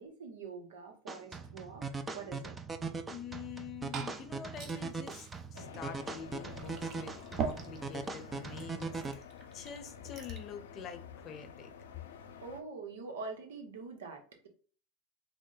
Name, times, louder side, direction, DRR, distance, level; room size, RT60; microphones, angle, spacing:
voice 1, 0.0-2.5 12.4-14.5, right 4 dB, 85° right, 4 dB, 0.9 m, -45 dB
sound 1, 1.1-9.1, right 4 dB, 20° right, 0.5 m, -40 dB
voice 2, 3.1-9.2 9.5-11.7, left 7 dB, 45° left, 7 dB, 0.7 m, -46 dB
Glass / Fill (with liquid), 3.4-10.5, right 6 dB, 50° right, 0.9 m, -44 dB
sound 2, 5.5-12.6, left 7 dB, 90° left, 0.6 m, -50 dB
3.7 x 2.1 x 3.8 m, 0.41 s
hypercardioid pair, 95°, 0 cm